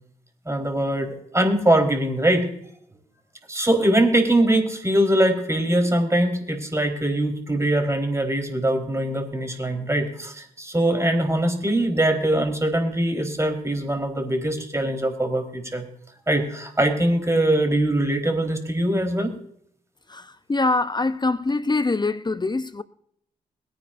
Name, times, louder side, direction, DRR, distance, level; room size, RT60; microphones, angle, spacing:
voice 1, 0.5-2.5 3.5-15.9 16.3-19.3, right 1 dB, 15° right, 4.1 m, -22 dB
voice 2, 20.1-22.8, left 3 dB, 25° left, 0.8 m, -24 dB
22.0 x 10.5 x 2.6 m
hypercardioid pair, 40°, 17 cm